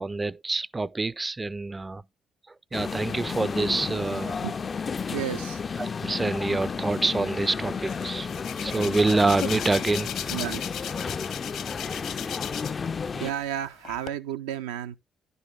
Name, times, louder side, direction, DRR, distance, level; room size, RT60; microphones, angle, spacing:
voice 1, 0.0-2.0 2.5-4.4 5.8-8.3 8.6-10.3, right 3 dB, 25° right, 0.4 m, -27 dB
sound 1, 2.7-13.3, left 5 dB, 40° left, 0.4 m, -32 dB
voice 2, 5.1-5.6 10.3-10.6 13.1-15.0, right 10 dB, 80° right, 0.6 m, -32 dB
Hands, 7.9-12.9 13.2-14.1, left 9 dB, 65° left, 1.0 m, -36 dB
11.0 x 6.8 x 3.7 m
hypercardioid pair, 45°, 0 cm